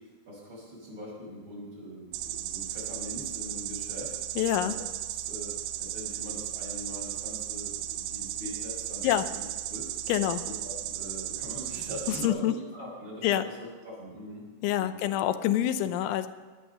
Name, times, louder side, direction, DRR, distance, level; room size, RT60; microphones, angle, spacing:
voice 1, 0.3-4.8 5.1-5.5 5.8-9.9 10.4-14.4 14.7-15.0, equal, 25° right, -4 dB, 6.3 m, -42 dB
sound 1, 2.1-12.3, right 12 dB, 85° right, 3.4 m, -35 dB
voice 2, 4.4-4.8 9.0-9.3 10.1-10.4 12.2-12.5 13.2-13.5 14.6-16.3, left 12 dB, 80° left, 10 dB, 3.1 m, -26 dB
21.5 x 9.1 x 6.7 m, 1.4 s
omnidirectional pair, 5.6 m